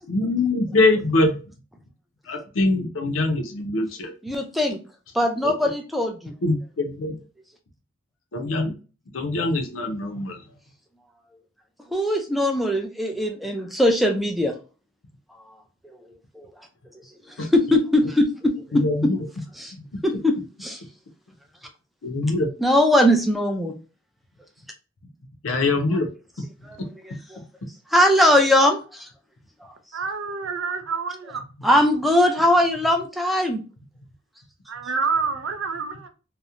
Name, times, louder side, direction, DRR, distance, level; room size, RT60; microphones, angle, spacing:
voice 1, 0.1-1.4 2.3-4.1 5.4-5.5 6.4-7.2 8.3-8.7 9.1-10.4 17.4-17.5 18.7-19.3 19.7-20.0 22.0-22.5 25.4-26.1 26.8-26.9, left 2 dB, 90° left, 4 dB, 0.6 m, -23 dB
voice 2, 4.2-4.8 5.1-6.3 11.9-14.5 16.4-16.5 17.5-19.1 19.6-19.7 20.0-20.3 20.6-20.8 22.6-23.7 27.9-28.8 31.6-33.6, left 1 dB, ahead, 3 dB, 0.4 m, -20 dB
voice 3, 29.9-31.4 34.7-36.1, right 5 dB, 75° right, 7 dB, 0.5 m, -27 dB
2.8 x 2.1 x 2.4 m, 0.33 s
head